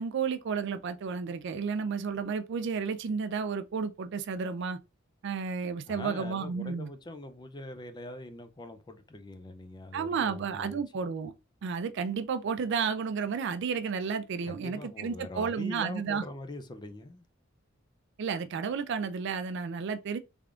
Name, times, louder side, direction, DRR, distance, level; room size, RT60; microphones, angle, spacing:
voice 1, 0.0-4.8 5.2-6.9 9.9-11.3 11.6-16.2 18.2-20.2, right 5 dB, 60° right, 0.4 m, -32 dB
voice 2, 5.9-11.1 14.4-17.3, left 2 dB, 20° left, 0.4 m, -43 dB
3.4 x 3.4 x 2.4 m
head